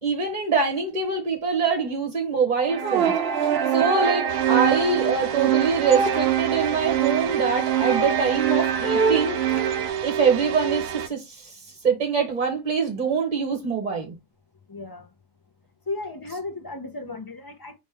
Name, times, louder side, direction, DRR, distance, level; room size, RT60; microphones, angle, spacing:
voice 1, 0.0-3.1 3.4-9.6 10.0-14.1, right 5 dB, 35° right, 1.1 m, -24 dB
sound 1, 2.7-9.9, right 8 dB, 55° right, 0.8 m, -24 dB
sound 2, 4.3-11.1, right 9 dB, 90° right, 1.0 m, -29 dB
voice 2, 14.7-15.1 15.9-17.7, left 3 dB, 25° left, 0.5 m, -34 dB
4.3 x 3.0 x 3.4 m
omnidirectional pair, 1.4 m